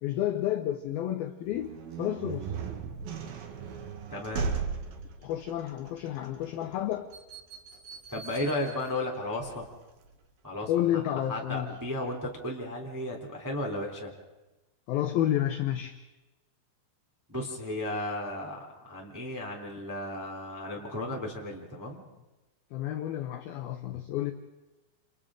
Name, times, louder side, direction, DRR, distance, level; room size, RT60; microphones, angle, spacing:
voice 1, 0.0-2.6 5.2-7.1 10.7-11.8 14.9-16.0 22.7-24.3, left 12 dB, 80° left, 6 dB, 2.2 m, -30 dB
sound 1, 1.4-10.1, right 5 dB, 60° right, 3.0 m, -38 dB
voice 2, 4.1-4.5 8.1-9.7 10.4-14.1 17.3-22.0, left 1 dB, 5° right, -1 dB, 1.9 m, -34 dB
29.5 x 29.0 x 3.8 m, 1.1 s
omnidirectional pair, 5.5 m